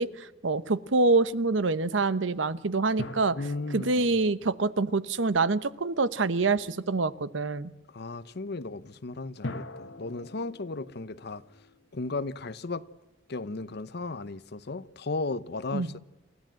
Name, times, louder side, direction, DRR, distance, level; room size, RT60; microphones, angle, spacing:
voice 1, 0.0-3.4 3.7-7.7 15.7-15.9, right 3 dB, 85° right, 0.9 m, -26 dB
sound 1, 3.0-5.8 9.4-12.8, left 1 dB, 90° left, 1.8 m, -43 dB
voice 2, 3.4-4.1 7.9-11.4 11.9-12.8 13.3-16.0, left 3 dB, 60° left, 0.9 m, -35 dB
29.0 x 14.5 x 7.7 m
head